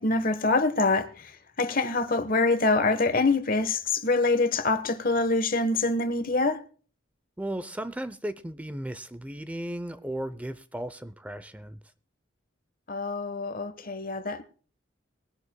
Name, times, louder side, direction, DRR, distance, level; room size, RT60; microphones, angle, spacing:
voice 1, 0.0-6.6 12.9-14.4, left 3 dB, 50° left, 1.2 m, -25 dB
voice 2, 7.4-11.8, right 1 dB, 10° right, 0.6 m, -35 dB
22.0 x 11.0 x 2.2 m
head